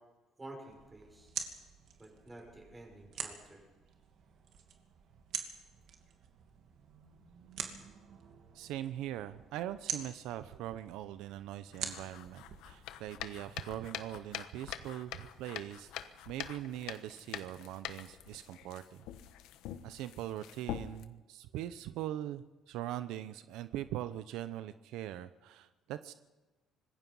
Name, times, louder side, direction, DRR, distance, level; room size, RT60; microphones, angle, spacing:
voice 1, 0.4-1.3 2.0-3.6, right 2 dB, 15° right, 2 dB, 6.2 m, -50 dB
sound 1, 0.7-13.4, right 7 dB, 65° right, 2.6 m, -46 dB
voice 2, 8.5-15.9 16.3-19.0 19.8-26.1, right 12 dB, 90° right, 12 dB, 0.7 m, -41 dB
sound 2, 11.7-21.1, left 11 dB, 90° left, 1.1 m, -45 dB
25.5 x 20.5 x 5.6 m, 1.2 s
cardioid pair, 135°, 0 cm